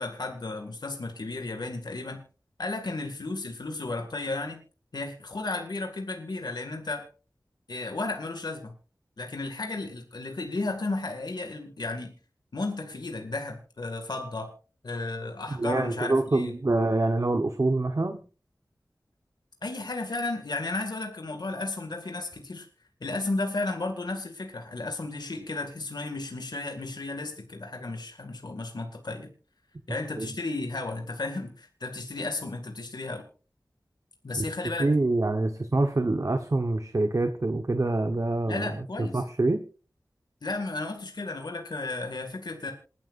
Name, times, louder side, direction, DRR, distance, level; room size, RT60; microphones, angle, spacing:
voice 1, 0.0-2.2 2.6-4.6 4.9-7.0 7.7-8.7 9.2-12.1 12.5-14.5 14.8-16.5 19.6-22.7 23.0-29.3 29.9-33.2 34.2-34.9 38.5-39.2 40.4-42.7, left 2 dB, 75° left, 3 dB, 2.1 m, -33 dB
voice 2, 15.5-18.2 30.2-30.3 34.4-34.5 34.8-39.6, right 2 dB, 45° right, 7 dB, 1.1 m, -26 dB
27.0 x 10.5 x 2.6 m, 0.36 s
wide cardioid pair, 70°, 7 cm